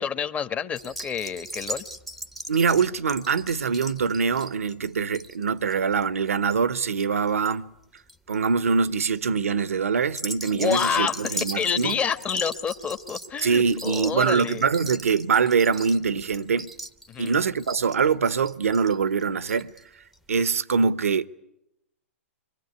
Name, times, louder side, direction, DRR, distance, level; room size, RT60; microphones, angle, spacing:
voice 1, 0.0-1.8 10.5-14.7 17.1-17.3, left 7 dB, 20° left, 1.4 m, -28 dB
sound 1, 0.8-7.5 7.8-8.3 8.9-9.2 10.0-19.8 20.1-20.2 20.5-20.6, right 1 dB, ahead, 1.0 m, -39 dB
voice 2, 2.5-7.7 8.3-12.0 13.4-16.7 17.2-19.7 20.3-21.3, right 5 dB, 75° right, 1.0 m, -23 dB
25.0 x 24.0 x 9.7 m
figure-of-eight pair, 115°, 8 cm